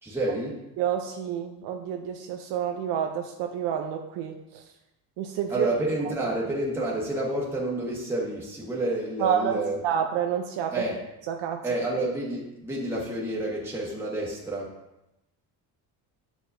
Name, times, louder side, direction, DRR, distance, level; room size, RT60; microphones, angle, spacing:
voice 1, 0.0-0.6 5.5-9.7 10.7-10.9 11.6-14.7, right 1 dB, 5° right, -5 dB, 1.3 m, -29 dB
voice 2, 0.8-4.6 5.2-5.7 9.2-10.8 11.3-11.6, right 8 dB, 80° right, 4 dB, 0.6 m, -29 dB
7.6 x 4.9 x 2.6 m, 0.91 s
cardioid pair, 115°, 42 cm